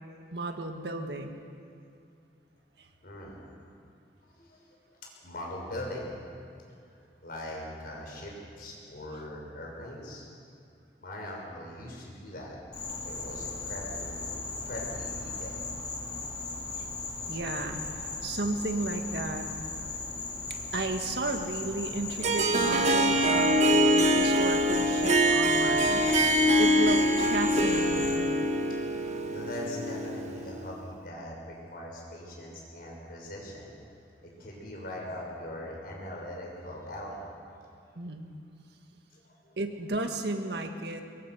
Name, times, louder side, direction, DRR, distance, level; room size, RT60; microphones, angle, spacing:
voice 1, 0.3-1.4 2.8-2.9 16.7-16.9 17.3-19.5 20.5-28.3 38.0-38.3 39.6-41.0, right 2 dB, 70° right, 5 dB, 1.7 m, -34 dB
voice 2, 3.0-3.4 4.2-4.6 5.2-6.1 6.9-10.3 11.0-12.6 13.0-15.7 19.9-20.4 28.9-33.7 34.2-37.3 39.1-39.6, left 1 dB, 55° left, -2 dB, 6.2 m, -41 dB
Insect, 12.7-28.2, left 3 dB, 25° left, 3.3 m, -37 dB
Harp, 22.2-30.7, equal, 40° right, 1.5 m, -24 dB
23.0 x 22.5 x 6.2 m, 2.4 s
head